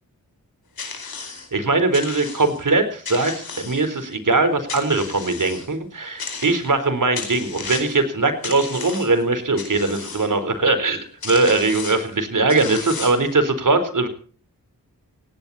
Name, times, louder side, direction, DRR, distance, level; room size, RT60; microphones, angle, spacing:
sound 1, 0.8-1.5 1.9-2.6 3.0-4.1 4.7-5.7 6.2-6.8 7.1-8.0 8.4-9.2 9.6-10.3 10.9-11.0 11.2-12.1 12.5-13.3, left 5 dB, 85° left, 4.5 m, -34 dB
voice 1, 1.5-14.1, right 3 dB, 60° right, 10 dB, 3.9 m, -21 dB
17.5 x 17.5 x 4.2 m, 0.41 s
cardioid pair, 60°, 35 cm